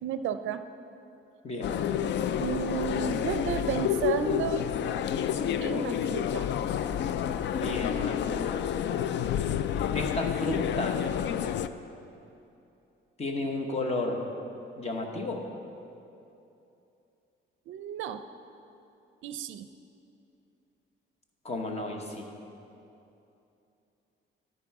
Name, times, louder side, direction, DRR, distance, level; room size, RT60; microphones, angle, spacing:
voice 1, 0.0-0.6 2.4-4.7 5.6-6.5 17.7-18.2 19.2-19.7, right 9 dB, 75° right, 10 dB, 0.4 m, -33 dB
sound 1, 1.6-11.7, left 9 dB, 60° left, 0.4 m, -29 dB
voice 2, 7.5-8.7 9.9-11.1 13.2-14.3 14.8-15.5 21.4-22.3, left 2 dB, 30° left, 3 dB, 1.1 m, -33 dB
11.0 x 9.9 x 4.8 m, 2.8 s
cardioid pair, 150°, 21 cm